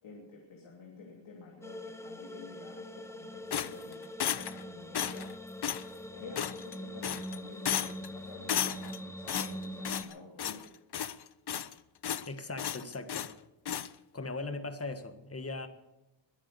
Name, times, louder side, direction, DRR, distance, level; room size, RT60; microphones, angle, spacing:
voice 1, 0.0-4.1 4.4-5.3 6.1-10.6, left 4 dB, 85° left, -1 dB, 3.1 m, -50 dB
sound 1, 1.6-10.0, equal, 5° left, 1.1 m, -43 dB
sound 2, 3.5-4.6 4.9-5.3 5.6-5.9 6.4-6.8 7.0-7.4 7.7-8.1 8.5-9.0 9.3-10.1 10.4-10.7 10.9-11.7 12.0-12.3 12.6-13.3 13.7-13.9, left 9 dB, 55° left, 0.7 m, -34 dB
voice 2, 12.3-13.3 14.1-15.7, left 3 dB, 30° left, 9 dB, 1.7 m, -39 dB
22.0 x 8.5 x 7.0 m, 0.99 s
wide cardioid pair, 90°, 46 cm